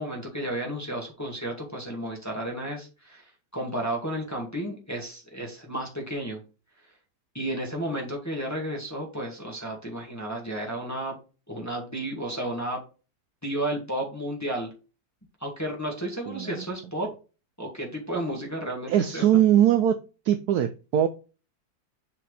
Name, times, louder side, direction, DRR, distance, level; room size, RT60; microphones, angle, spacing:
voice 1, 0.0-6.4 7.3-11.2 11.5-12.8 13.4-14.7 15.4-17.1 17.6-19.2, right 1 dB, 10° left, 1.8 m, -32 dB
voice 2, 16.3-16.7 18.9-20.0 20.2-21.1, right 11 dB, 70° right, 0.9 m, -21 dB
7.3 x 4.7 x 3.3 m
omnidirectional pair, 2.1 m